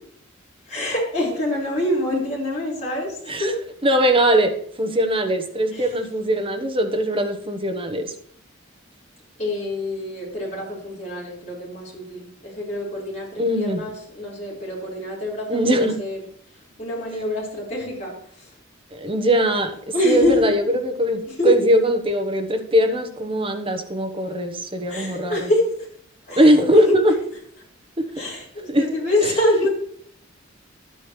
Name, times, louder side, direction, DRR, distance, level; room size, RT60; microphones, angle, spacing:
voice 1, 0.7-3.6 5.7-5.9 9.4-16.2 16.8-18.5 19.9-20.5 21.2-21.6 24.9-25.8 26.3-27.0 28.1-29.7, left 1 dB, 35° left, -6 dB, 4.8 m, -25 dB
voice 2, 3.8-4.5 4.8-8.1 13.4-13.8 15.5-16.0 18.9-19.7 20.0-25.5 26.4-27.1 28.7-28.8, equal, 25° right, 5 dB, 1.0 m, -20 dB
11.5 x 9.1 x 3.2 m, 0.63 s
head